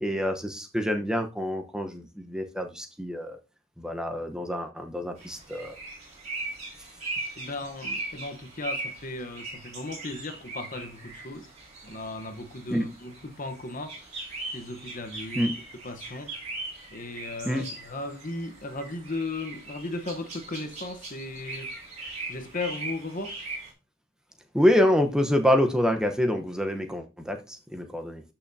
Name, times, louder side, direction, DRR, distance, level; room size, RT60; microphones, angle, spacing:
voice 1, 0.0-3.4 3.8-5.7 12.7-12.8 15.4-15.5 17.4-17.7 24.5-28.2, equal, 5° right, 0.9 m, -26 dB
sound 1, 5.2-23.7, right 2 dB, 35° right, 4.1 m, -39 dB
voice 2, 7.4-11.5 11.8-14.0 14.5-15.5 15.8-16.3 16.9-21.7 22.3-23.4, left 2 dB, 40° left, 1.0 m, -36 dB
13.0 x 5.8 x 2.7 m
head